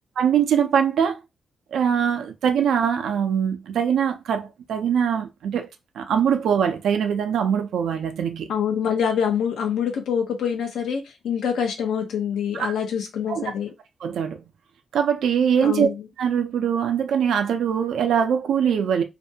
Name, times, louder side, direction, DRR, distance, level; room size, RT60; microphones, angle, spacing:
voice 1, 0.2-1.2 1.7-5.7 6.0-8.5 12.6-12.7 13.3-13.4 14.0-14.4 14.9-15.9 16.2-19.0, right 8 dB, 80° right, 0.4 m, -22 dB
voice 2, 8.5-13.7 15.6-16.0, left 7 dB, 80° left, 0.7 m, -25 dB
2.5 x 2.2 x 2.7 m
cardioid pair, 70°, 0 cm